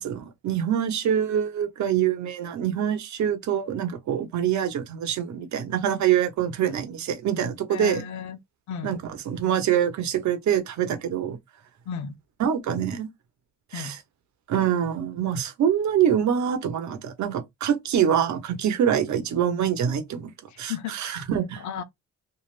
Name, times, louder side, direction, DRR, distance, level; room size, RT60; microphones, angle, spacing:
voice 1, 0.0-8.0 8.8-11.4 12.4-13.1 13.7-14.0 14.5-20.3 20.6-21.6, right 9 dB, 70° right, 0.9 m, -25 dB
voice 2, 7.7-8.4 8.7-9.0 11.9-12.2 13.7-13.9 20.7-21.2 21.6-21.8, left 7 dB, 70° left, 0.7 m, -34 dB
3.2 x 2.6 x 2.5 m
cardioid pair, 90°, 30 cm